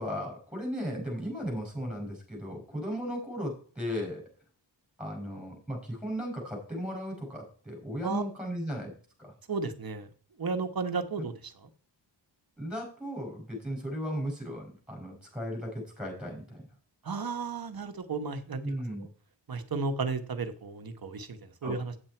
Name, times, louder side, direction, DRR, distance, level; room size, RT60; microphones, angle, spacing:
voice 1, 0.0-4.2 5.0-8.9 9.2-9.3 11.2-11.3 12.6-16.6 18.6-19.1 21.6-21.7, equal, ahead, 0 dB, 5.1 m, -36 dB
voice 2, 9.5-10.1 10.4-11.7 17.0-18.6 19.0-19.1 19.5-21.9, right 4 dB, 50° right, 7 dB, 1.3 m, -34 dB
9.0 x 7.5 x 4.5 m, 0.43 s
wide cardioid pair, 105°, 46 cm